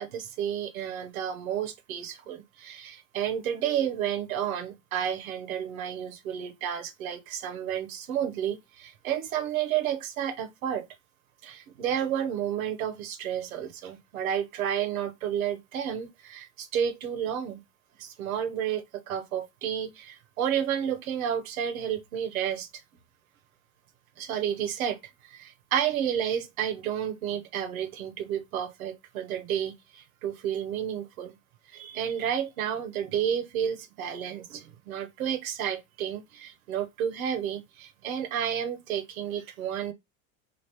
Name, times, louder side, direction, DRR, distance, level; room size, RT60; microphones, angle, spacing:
voice 1, 0.0-10.9 11.4-17.6 18.0-22.7 24.2-31.4 31.7-39.9, right 9 dB, 90° right, 0.8 m, -31 dB
3.3 x 2.4 x 2.9 m
hypercardioid pair, 95°, 41 cm